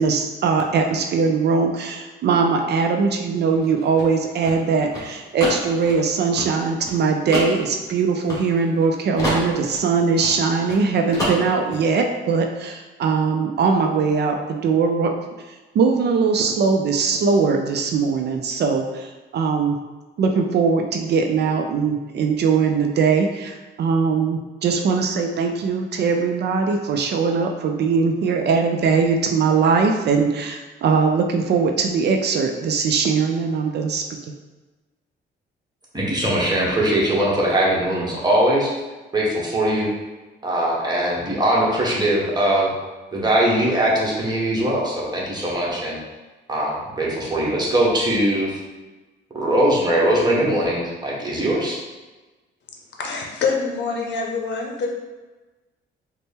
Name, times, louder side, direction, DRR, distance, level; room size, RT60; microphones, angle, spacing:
voice 1, 0.0-15.1 15.5-19.8 20.2-34.0, right 5 dB, 55° right, 4 dB, 0.4 m, -21 dB
sound 1, 3.6-8.9 9.2-10.8 11.1-11.8, equal, 15° left, 1.5 m, -29 dB
voice 2, 35.9-38.7 39.1-39.9 40.4-42.7 43.1-46.0 46.5-48.6 49.3-51.8, right 1 dB, 20° right, -5 dB, 1.1 m, -21 dB
voice 3, 53.0-54.9, left 4 dB, 65° left, 1 dB, 0.7 m, -25 dB
4.1 x 2.1 x 3.5 m, 1.2 s
cardioid pair, 90°, 20 cm